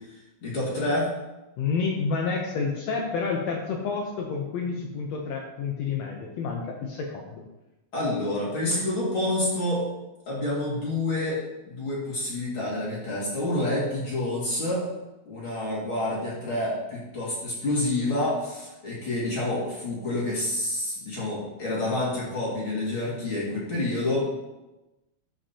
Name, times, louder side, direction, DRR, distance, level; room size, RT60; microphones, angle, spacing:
voice 1, 0.4-1.1 7.9-9.8 10.3-11.4 11.6-14.8 15.3-24.3, left 1 dB, 45° left, -7 dB, 2.9 m, -28 dB
voice 2, 1.6-7.4, left 5 dB, 70° left, 0 dB, 1.9 m, -29 dB
12.5 x 5.8 x 2.9 m, 1.0 s
omnidirectional pair, 3.4 m